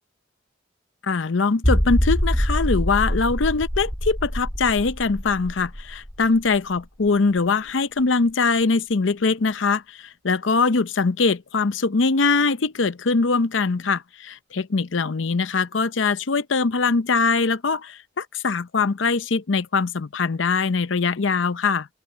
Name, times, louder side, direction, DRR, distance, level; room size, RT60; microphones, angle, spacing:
voice 1, 1.0-21.9, left 4 dB, 70° left, 0.7 m, -22 dB
sound 1, 1.6-7.1 7.4-7.5 8.0-8.1, equal, 15° left, 3.2 m, -25 dB
open air
head